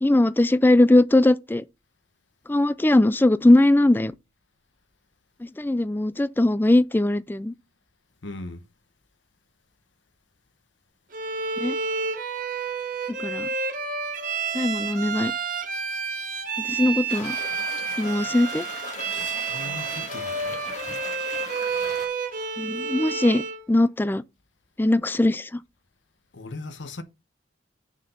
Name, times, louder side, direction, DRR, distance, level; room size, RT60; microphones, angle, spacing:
voice 1, 0.0-1.6 2.5-4.1 5.6-7.5 11.6-11.7 13.2-13.5 14.5-15.3 16.6-17.4 18.0-18.6 22.6-23.4 23.7-24.2 24.8-25.6, left 1 dB, 10° left, 0.3 m, -20 dB
voice 2, 8.2-8.6 19.1-20.5 26.3-27.0, left 2 dB, 85° left, 1.0 m, -38 dB
Bowed string instrument, 11.1-23.6, right 5 dB, 50° right, 1.4 m, -30 dB
sound 1, 17.1-22.1, left 3 dB, 40° left, 2.2 m, -38 dB
6.6 x 5.2 x 5.5 m
head